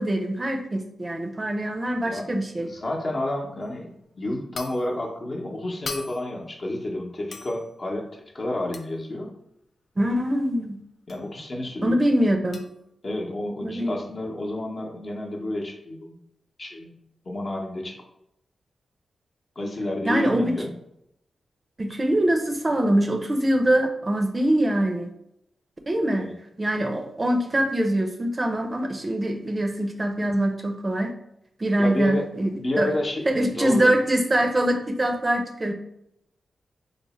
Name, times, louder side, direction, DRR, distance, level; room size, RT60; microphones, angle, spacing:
voice 1, 0.0-2.7 10.0-10.8 11.8-12.6 13.6-14.0 20.1-20.6 21.8-25.1 25.9-26.3 26.6-31.1 31.6-32.9 33.3-35.7, right 1 dB, 30° right, 5 dB, 0.5 m, -23 dB
voice 2, 2.6-9.3 11.1-11.9 13.0-16.2 16.6-17.0 17.2-18.0 19.6-20.7 26.2-26.3 31.8-32.3 32.6-33.9, left 1 dB, 45° left, 0 dB, 0.8 m, -30 dB
sound 1, 3.6-3.8 4.5-5.0 5.8-6.5 7.3-7.7 8.7-9.0 11.1-11.3 12.5-12.8, left 4 dB, 65° left, 0.3 m, -39 dB
3.1 x 2.1 x 4.2 m, 0.78 s
cardioid pair, 60°, 0 cm